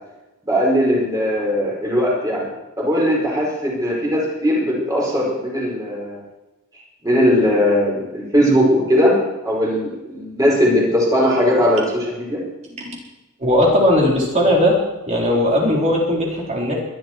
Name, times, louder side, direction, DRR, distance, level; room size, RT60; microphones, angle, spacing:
voice 1, 0.4-2.4 2.8-6.2 7.0-9.2 9.4-12.4, equal, 15° right, -3 dB, 5.0 m, -19 dB
voice 2, 13.4-14.8 15.1-16.7, left 1 dB, 35° right, -2 dB, 4.2 m, -17 dB
21.5 x 11.5 x 4.6 m, 1.0 s
head